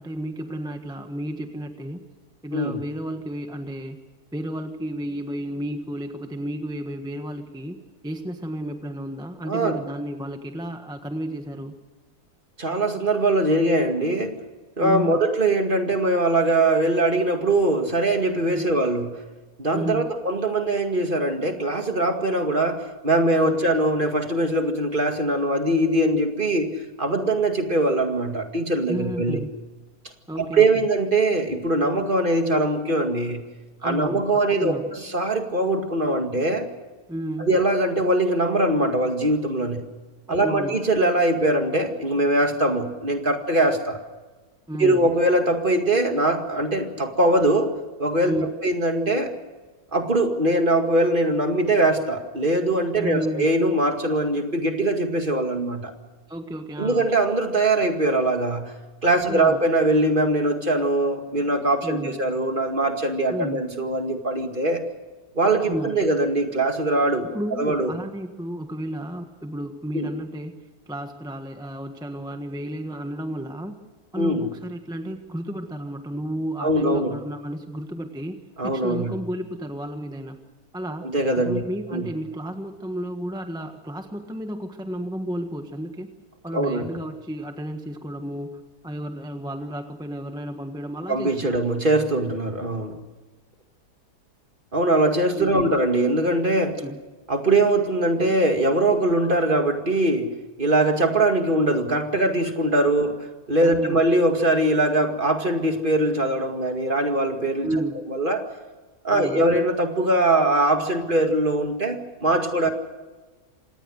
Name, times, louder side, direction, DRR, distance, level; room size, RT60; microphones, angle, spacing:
voice 1, 0.0-2.0 2.4-4.0 4.3-7.8 8.0-11.7 14.8-15.2 18.4-18.6 19.7-20.1 23.5-23.6 28.8-29.5 30.3-30.9 33.8-34.2 34.6-35.0 37.1-37.5 40.3-40.8 44.7-45.1 48.2-48.5 52.9-53.5 56.3-57.1 59.2-59.6 61.8-62.2 63.3-63.6 65.6-66.0 67.3-70.5 70.9-73.8 74.1-80.4 80.7-86.1 86.4-91.6 95.4-95.8 96.8-97.0 103.6-104.0 107.6-108.0 109.1-109.5 112.6-112.7, right 1 dB, 5° right, 6 dB, 1.3 m, -32 dB
voice 2, 9.4-9.8 12.6-14.3 14.8-19.2 19.6-29.4 30.4-33.4 33.8-36.7 37.4-39.9 40.3-44.0 44.8-47.7 48.0-49.3 49.9-55.9 56.8-58.7 59.0-64.9 65.3-67.3 67.6-67.9 69.9-70.1 74.2-74.5 76.6-77.1 78.6-79.2 81.0-81.6 81.9-82.1 86.5-86.8 91.1-93.0 94.7-96.8 97.3-100.3 100.6-107.7 108.1-108.4 109.0-112.7, right 2 dB, 30° right, 5 dB, 2.3 m, -22 dB
26.5 x 18.5 x 6.5 m, 1.2 s
omnidirectional pair, 1.7 m